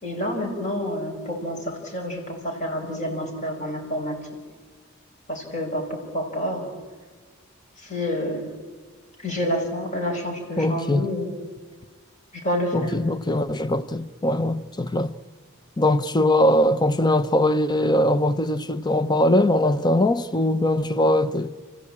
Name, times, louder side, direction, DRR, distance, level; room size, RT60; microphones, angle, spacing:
voice 1, 0.0-4.2 5.3-6.7 7.8-8.5 9.2-11.3 12.3-13.0, equal, 35° left, 5.3 m, -28 dB
voice 2, 10.6-11.0 12.7-15.1 15.8-21.5, left 1 dB, 20° left, 0.8 m, -21 dB
29.5 x 15.0 x 8.6 m
head